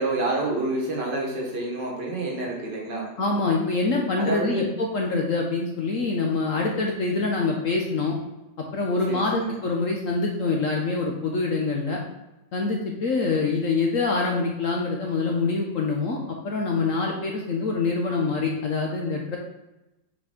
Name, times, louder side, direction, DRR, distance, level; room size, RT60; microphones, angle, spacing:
voice 1, 0.0-3.1 4.2-4.6 9.1-9.6, right 2 dB, 70° right, -1 dB, 2.1 m, -28 dB
voice 2, 3.2-8.1 8.7-12.0 12.5-19.4, left 3 dB, 55° left, 0 dB, 1.0 m, -25 dB
6.0 x 4.3 x 5.0 m, 0.98 s
omnidirectional pair, 2.0 m